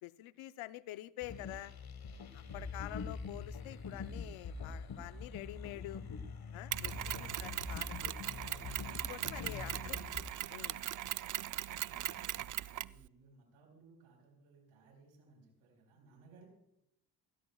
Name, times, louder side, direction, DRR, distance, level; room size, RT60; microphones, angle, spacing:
voice 1, 0.0-1.7 2.3-6.0 6.5-8.3 9.1-10.0 10.5-10.9, left 15 dB, 80° left, 14 dB, 0.8 m, -47 dB
sound 1, 1.2-10.2, left 4 dB, 50° left, 1.5 m, -44 dB
Mechanisms, 6.7-13.0, right 12 dB, 40° right, 0.4 m, -39 dB
voice 2, 9.6-10.7 11.6-16.5, right 4 dB, 85° right, 2 dB, 4.6 m, -61 dB
20.0 x 15.0 x 2.4 m, 0.78 s
supercardioid pair, 60°, 48 cm